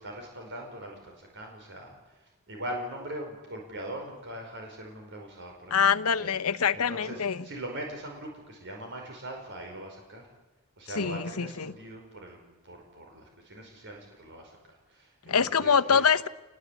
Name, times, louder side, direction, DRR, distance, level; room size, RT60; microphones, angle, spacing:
voice 1, 0.0-6.3 6.7-10.3 10.8-12.4 12.6-16.0, right 1 dB, 55° right, 1 dB, 5.1 m, -41 dB
voice 2, 5.7-7.4 11.0-11.7 15.3-16.3, left 6 dB, 90° left, 14 dB, 0.9 m, -25 dB
28.0 x 20.0 x 8.4 m, 1.1 s
head